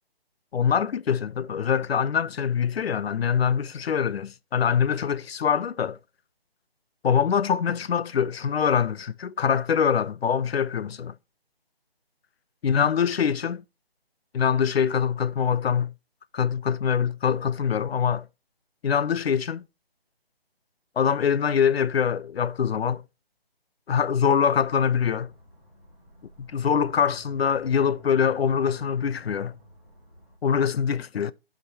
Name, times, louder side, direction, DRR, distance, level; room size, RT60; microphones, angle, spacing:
voice 1, 0.5-6.0 7.0-11.1 12.6-13.6 14.3-15.9 16.3-18.3 18.8-19.6 21.0-23.0 23.9-25.3 26.4-29.6 30.4-31.3, left 7 dB, 80° left, 0.5 m, -24 dB
sound 1, 24.0-30.4, right 1 dB, 10° left, 1.6 m, -53 dB
14.5 x 5.1 x 2.7 m
hypercardioid pair, 175°, 30 cm